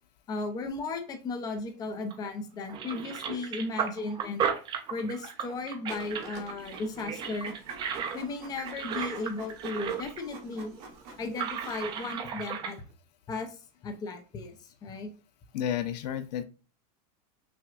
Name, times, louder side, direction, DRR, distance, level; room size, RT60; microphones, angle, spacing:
voice 1, 0.3-4.4 4.9-7.5 8.1-10.7 11.2-12.8 13.3-13.6 13.8-15.1, left 3 dB, 20° left, 5 dB, 0.6 m, -35 dB
sound 1, 2.1-2.3 2.7-10.3 10.5-10.6 11.3-12.7, right 7 dB, 25° right, 0.5 m, -35 dB
Printer, 5.9-12.1, right 3 dB, 50° right, 1.3 m, -48 dB
voice 2, 15.5-16.4, left 9 dB, 80° left, 10 dB, 0.6 m, -31 dB
5.9 x 2.3 x 2.4 m, 0.36 s
supercardioid pair, 165°, 21 cm